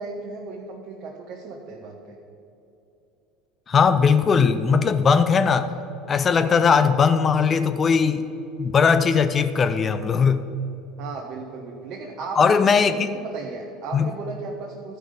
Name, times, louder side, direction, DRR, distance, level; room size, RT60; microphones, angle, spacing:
voice 1, 0.0-2.2 11.0-15.0, right 4 dB, 55° right, 0 dB, 1.1 m, -36 dB
voice 2, 3.7-5.7 6.1-8.3 8.6-10.5 12.4-13.2 13.9-14.1, left 5 dB, 35° left, 11 dB, 0.5 m, -19 dB
12.5 x 5.6 x 5.1 m, 2.8 s
hypercardioid pair, 80°, 0 cm